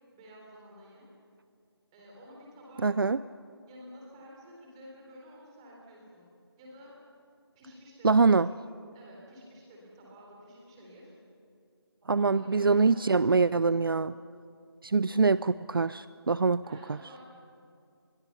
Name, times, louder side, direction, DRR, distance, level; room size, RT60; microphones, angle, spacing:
voice 1, 0.1-1.1 1.9-3.2 3.7-6.3 6.6-7.0 7.5-8.5 8.9-11.1 12.1-13.9 16.6-17.2, equal, 10° right, -3 dB, 3.8 m, -51 dB
voice 2, 2.8-3.2 8.0-8.5 12.1-14.1 14.8-16.6, right 4 dB, 60° right, 16 dB, 0.5 m, -24 dB
25.5 x 22.0 x 6.9 m, 2.4 s
figure-of-eight pair, 175°, 14 cm